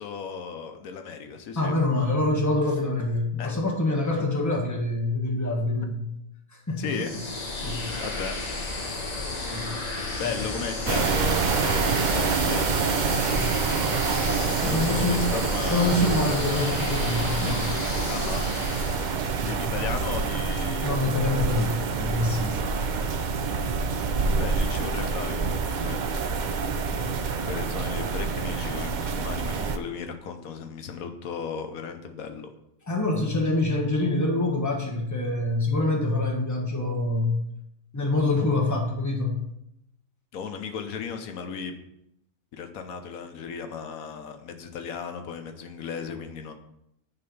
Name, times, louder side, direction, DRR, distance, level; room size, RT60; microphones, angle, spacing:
voice 1, 0.0-1.7 3.4-3.6 4.1-4.2 6.8-7.1 8.0-8.3 10.2-13.0 14.6-16.7 18.1-18.4 19.4-20.9 24.4-26.0 27.4-32.5 40.3-41.7 42.5-46.5, left 6 dB, 85° left, 6 dB, 1.2 m, -35 dB
voice 2, 1.6-6.0 6.7-6.9 7.6-7.9 9.5-9.8 13.2-13.6 14.6-15.2 15.7-17.7 19.4-19.7 20.8-22.6 26.9-27.1 32.9-37.4 37.9-39.4, left 2 dB, 15° left, 0 dB, 1.2 m, -26 dB
sound 1, 6.9-19.5, left 2 dB, 30° left, 1.1 m, -33 dB
sound 2, 10.9-29.8, right 5 dB, 60° right, 0.4 m, -27 dB
9.6 x 3.4 x 5.3 m, 0.80 s
omnidirectional pair, 1.5 m